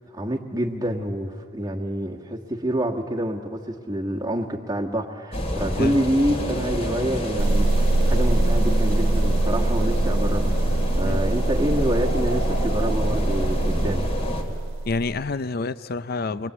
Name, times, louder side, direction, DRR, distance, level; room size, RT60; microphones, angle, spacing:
voice 1, 0.0-7.7 8.1-14.0, right 1 dB, 15° right, -2 dB, 1.4 m, -27 dB
sound 1, 5.3-14.4, equal, 30° left, 2.7 m, -28 dB
sound 2, 7.4-15.2, right 2 dB, 70° right, 0.6 m, -23 dB
voice 2, 14.9-16.5, left 3 dB, 50° left, 14 dB, 0.5 m, -27 dB
25.5 x 22.0 x 8.5 m, 2.3 s
head